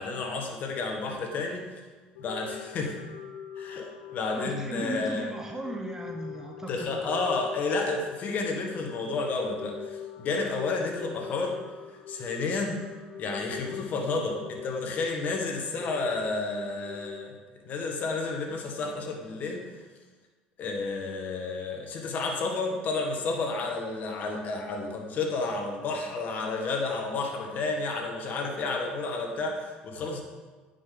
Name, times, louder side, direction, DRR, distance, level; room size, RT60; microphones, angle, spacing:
voice 1, 0.0-1.8 2.2-3.0 3.6-5.3 6.7-11.6 12.1-12.8 13.2-17.4 17.6-19.7 20.6-30.2, left 3 dB, 50° left, 1 dB, 1.7 m, -31 dB
sound 1, 2.2-17.3, left 9 dB, 90° left, 0.8 m, -44 dB
voice 2, 4.4-7.3, right 2 dB, 15° right, 3 dB, 0.8 m, -37 dB
9.4 x 5.6 x 4.0 m, 1.3 s
supercardioid pair, 90°, 4 cm